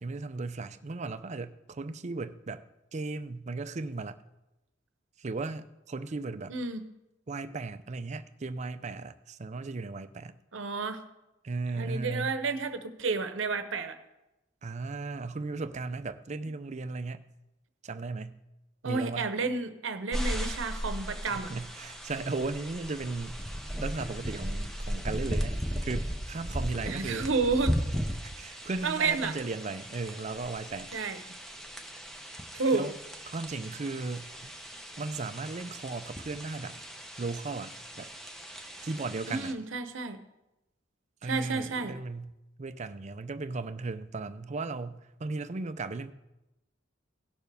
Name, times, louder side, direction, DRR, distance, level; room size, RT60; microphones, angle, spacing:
voice 1, 0.0-2.6 2.9-4.2 5.2-6.5 7.3-10.4 11.4-12.4 14.6-17.2 17.8-18.4 18.8-19.3 21.3-23.4 23.8-27.3 28.1-30.9 32.7-32.9 33.3-34.3 35.0-36.8 37.2-38.1 38.8-39.5 41.2-42.3 42.6-46.1, right 3 dB, 35° right, 0.5 m, -36 dB
voice 2, 6.5-6.9 10.5-11.0 11.8-14.0 18.8-21.5 26.8-27.8 28.8-29.4 30.9-31.2 32.5-32.9 39.3-40.2 41.2-42.0, right 4 dB, 70° right, 0.9 m, -31 dB
sound 1, 20.1-39.5, equal, ahead, 0.8 m, -37 dB
17.5 x 6.7 x 3.4 m
head